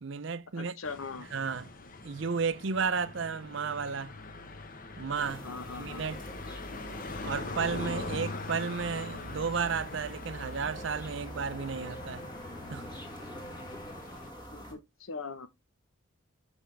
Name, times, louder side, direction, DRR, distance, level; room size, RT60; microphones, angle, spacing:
voice 1, 0.0-0.8 1.3-1.7 2.0-4.1 5.0-5.5 5.8-6.2 7.2-12.2 12.7-12.8, right 5 dB, 60° right, 0.6 m, -33 dB
voice 2, 0.6-1.3 5.4-6.3 14.5-15.5, left 4 dB, 75° left, 0.9 m, -41 dB
sound 1, 0.8-14.3, left 2 dB, 40° left, 0.8 m, -42 dB
sound 2, 5.1-14.7, equal, 20° left, 1.6 m, -45 dB
6.3 x 5.7 x 3.2 m
head